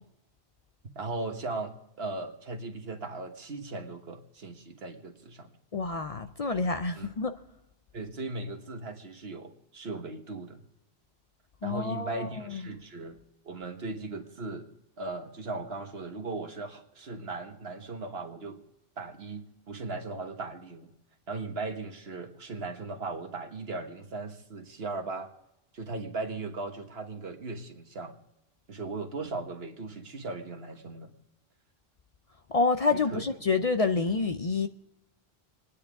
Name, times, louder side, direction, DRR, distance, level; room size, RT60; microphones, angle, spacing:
voice 1, 1.0-5.5 7.0-7.1 7.9-10.6 11.6-13.2 13.5-14.7 15.0-18.6 19.0-20.9 21.3-25.3 25.7-28.2 28.7-31.1 32.9-33.2, right 3 dB, 75° right, 1.6 m, -38 dB
voice 2, 5.7-7.4 11.6-12.7 32.5-34.7, left 4 dB, 45° left, 0.5 m, -28 dB
28.0 x 9.9 x 3.6 m
omnidirectional pair, 1.1 m